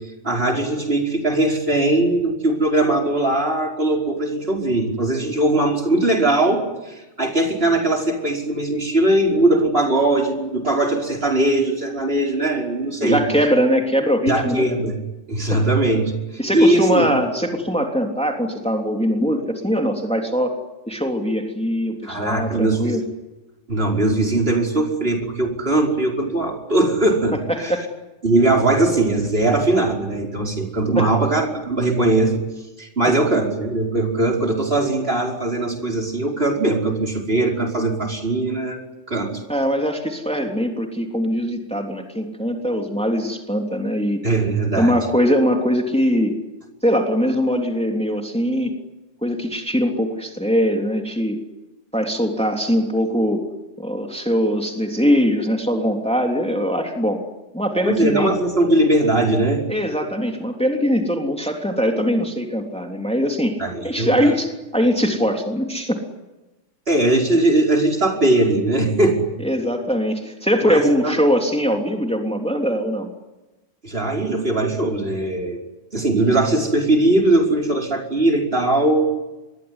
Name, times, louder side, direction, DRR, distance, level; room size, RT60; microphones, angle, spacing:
voice 1, 0.2-13.2 14.3-15.0 15.3-16.1 16.5-17.2 22.0-23.0 23.7-27.7 28.2-32.3 32.8-38.8 39.1-39.3 44.2-45.0 57.9-59.6 63.6-64.3 66.9-69.3 70.6-71.1 73.8-75.6 75.9-79.1, right 2 dB, 50° right, 1 dB, 5.5 m, -20 dB
voice 2, 13.0-14.7 15.5-15.6 16.4-20.6 20.9-23.0 27.5-27.8 31.0-31.1 33.0-33.1 39.5-44.3 44.8-46.4 46.8-48.8 49.2-51.4 51.9-53.5 53.8-57.2 57.5-58.3 59.7-63.6 63.8-66.0 69.4-73.1, equal, 5° left, 2 dB, 3.3 m, -21 dB
26.5 x 22.0 x 9.8 m, 1.1 s
omnidirectional pair, 1.2 m